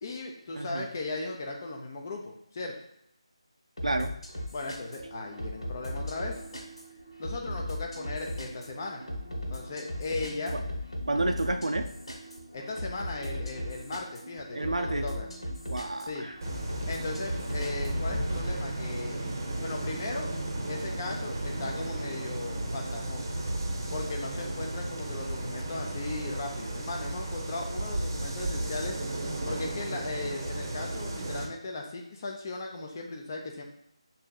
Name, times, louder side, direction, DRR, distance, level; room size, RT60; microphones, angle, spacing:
voice 1, 0.0-2.7 4.5-6.4 7.2-9.0 9.5-10.6 12.5-15.3 16.0-16.3 16.9-19.2 19.6-20.3 20.7-23.3 23.9-29.0 29.5-33.6, left 3 dB, 30° left, 0 dB, 0.5 m, -37 dB
voice 2, 0.5-0.9 3.8-4.1 11.1-11.9 14.5-15.1 15.7-16.4, right 2 dB, 75° right, 5 dB, 0.4 m, -30 dB
sound 1, 3.8-18.5, left 1 dB, 75° left, 1.3 m, -37 dB
sound 2, 4.8-22.3, right 3 dB, ahead, 0.7 m, -50 dB
sound 3, 16.4-31.5, right 1 dB, 35° right, 0.7 m, -34 dB
6.5 x 2.7 x 2.3 m, 0.75 s
figure-of-eight pair, 160°, 3 cm